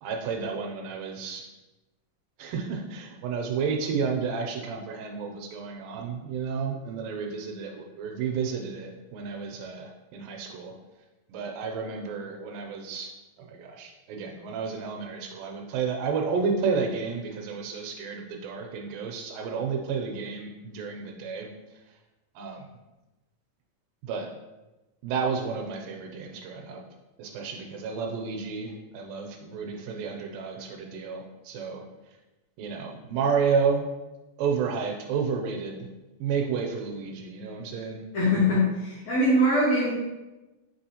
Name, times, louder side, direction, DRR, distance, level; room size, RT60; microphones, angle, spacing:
voice 1, 0.0-1.4 2.4-10.7 11.3-13.1 13.4-21.5 22.4-22.6 24.0-24.3 25.0-26.8 27.2-31.8 32.6-33.9 34.4-35.9 36.2-38.0, right 5 dB, 80° right, 2 dB, 2.1 m, -31 dB
voice 2, 38.1-39.9, left 1 dB, 65° left, -7 dB, 1.9 m, -22 dB
6.1 x 3.1 x 2.8 m, 1.1 s
omnidirectional pair, 4.1 m